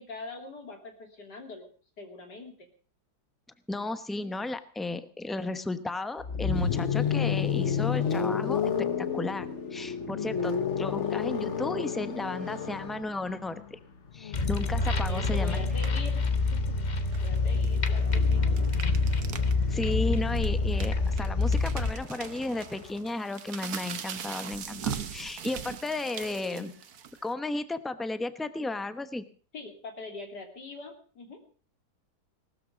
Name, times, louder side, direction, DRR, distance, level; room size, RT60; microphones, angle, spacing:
voice 1, 0.0-1.7 2.0-2.7 5.3-5.5 11.1-11.2 14.8-16.6 16.8-18.5 26.0-26.8 29.5-31.5, left 2 dB, 80° left, 4 dB, 3.5 m, -43 dB
voice 2, 3.7-13.8 14.1-15.6 19.7-26.7 27.2-29.2, left 2 dB, ahead, 11 dB, 0.6 m, -34 dB
sound 1, 6.2-18.2 19.4-23.0, left 7 dB, 45° left, 1.5 m, -32 dB
sound 2, 14.3-21.9, left 3 dB, 30° left, 1.0 m, -26 dB
sound 3, 15.7-16.1 17.0-19.5 19.9-20.0 20.3-27.3, right 8 dB, 65° right, 1.6 m, -40 dB
19.0 x 13.0 x 5.1 m, 0.40 s
omnidirectional pair, 1.8 m